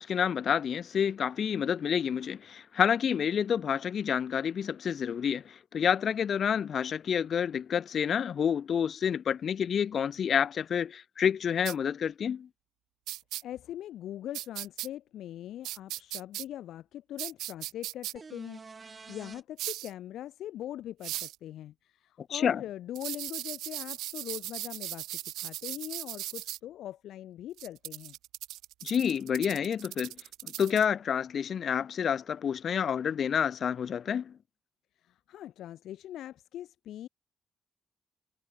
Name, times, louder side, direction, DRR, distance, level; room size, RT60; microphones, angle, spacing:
voice 1, 0.0-12.5 22.2-22.6 28.8-30.2 30.4-34.4, left 8 dB, 60° left, 0.7 m, -29 dB
sound 1, 11.7-11.8 13.1-13.4 14.3-14.9 15.6-16.5 17.2-18.1 19.6-19.9 21.0-21.4 23.0-26.6 27.6-30.9, right 15 dB, 85° right, 0.4 m, -38 dB
voice 2, 13.4-28.2 35.0-37.1, left 12 dB, 80° left, 2.4 m, -42 dB
sound 2, 18.2-19.4 23.3-23.4, right 4 dB, 40° right, 2.0 m, -47 dB
supercardioid pair, 60°, 0 cm